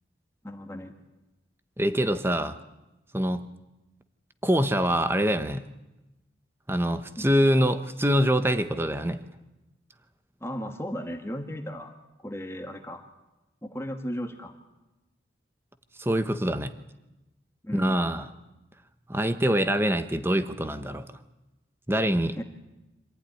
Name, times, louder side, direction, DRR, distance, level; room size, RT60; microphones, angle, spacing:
voice 1, 0.4-0.9 7.2-7.3 10.4-11.9 12.2-13.0 13.6-14.5 17.6-18.0 22.4-22.5, equal, 15° left, 5 dB, 1.6 m, -35 dB
voice 2, 1.8-2.6 3.1-3.4 4.4-5.6 6.7-9.2 16.0-16.7 17.7-18.3 19.1-21.1 21.9-22.4, equal, 10° right, 10 dB, 1.0 m, -24 dB
26.5 x 15.0 x 10.0 m, 1.0 s
head